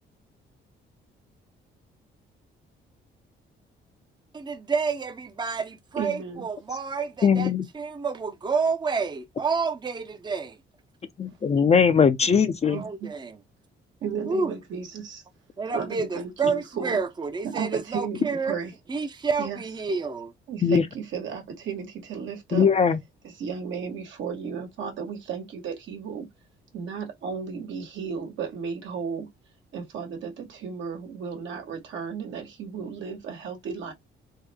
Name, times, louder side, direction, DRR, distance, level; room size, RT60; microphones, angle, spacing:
voice 1, 4.3-10.5 12.7-13.4 14.3-14.5 15.6-18.6 18.9-20.3, right 4 dB, 20° right, 0.6 m, -29 dB
voice 2, 5.9-6.5 12.7-13.1 14.0-15.2 15.7-17.0 17.4-18.7 19.4-19.6 20.5-22.7 23.2-26.3 26.7-29.3 29.7-33.9, right 6 dB, 75° right, 1.3 m, -34 dB
voice 3, 7.2-7.7 11.2-12.8 20.6-20.8 22.5-23.0, left 6 dB, 35° left, 0.5 m, -20 dB
3.6 x 2.0 x 3.3 m
cardioid pair, 90°, 20 cm